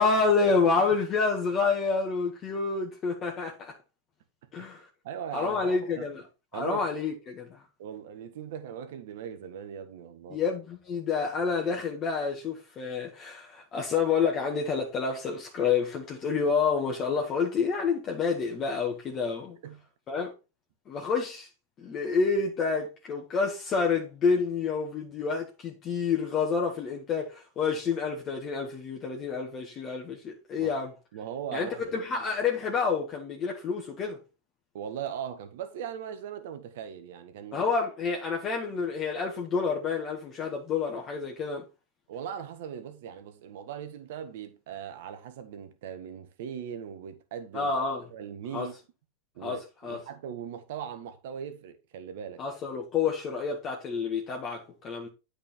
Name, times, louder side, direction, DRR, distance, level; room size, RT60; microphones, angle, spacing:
voice 1, 0.0-3.7 4.5-4.9 5.3-6.2 6.5-7.6 10.3-19.6 20.1-20.3 20.9-21.5 21.8-30.9 31.5-34.2 37.5-41.7 47.5-48.0 48.5-48.7 49.4-50.0 52.4-55.1, left 5 dB, 30° left, 1.7 m, -28 dB
voice 2, 5.0-6.1 6.5-6.9 7.8-10.4 19.6-19.8 30.6-30.8 31.1-31.8 34.7-37.6 42.1-47.7 48.1-48.8 49.3-52.4, right 8 dB, 60° right, 1.6 m, -39 dB
8.6 x 5.1 x 4.4 m
hypercardioid pair, 105°, 0 cm